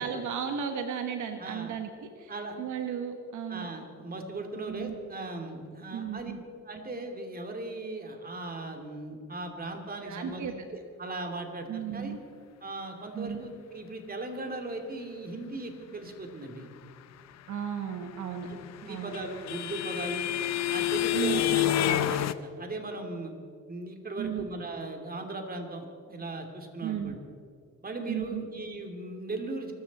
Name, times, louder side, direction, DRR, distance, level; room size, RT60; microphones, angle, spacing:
voice 1, 0.0-2.3 2.6-3.7 4.7-5.0 5.9-6.4 10.0-10.5 11.7-12.2 13.1-13.4 17.5-18.5 18.9-19.1 21.1-21.4 24.2-24.5 26.8-27.2 28.1-28.4, right 8 dB, 75° right, 6 dB, 1.4 m, -34 dB
voice 2, 1.4-1.7 2.3-2.5 3.5-6.3 6.6-12.1 12.6-16.7 18.4-20.3 20.7-23.3 23.7-27.2 27.8-29.7, right 2 dB, 30° right, 4 dB, 2.7 m, -38 dB
sound 1, 18.5-22.3, left 12 dB, 60° left, 0.6 m, -28 dB
24.0 x 13.5 x 4.2 m, 2.2 s
cardioid pair, 90°, 30 cm